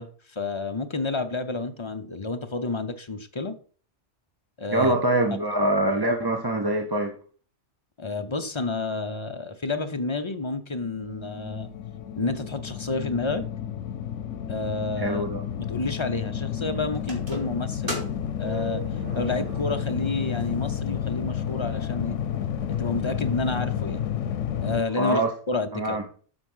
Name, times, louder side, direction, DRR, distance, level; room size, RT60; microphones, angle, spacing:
voice 1, 0.0-3.6 4.6-4.9 8.0-11.7 12.2-13.4 14.5-15.2 15.7-18.1 18.4-18.8 19.2-22.2 22.7-24.0 24.6-25.2 25.5-26.0, left 3 dB, 30° left, 0.6 m, -30 dB
voice 2, 4.7-7.1 15.0-15.4 25.0-25.3 25.7-26.0, right 1 dB, 25° right, 0.7 m, -24 dB
sound 1, 10.8-24.8, left 9 dB, 85° left, 1.1 m, -31 dB
sound 2, 17.0-20.1 20.4-20.5 21.3-21.4 21.8-21.9 22.1-22.8, right 3 dB, 45° right, 2.7 m, -37 dB
7.8 x 5.8 x 5.5 m
omnidirectional pair, 1.2 m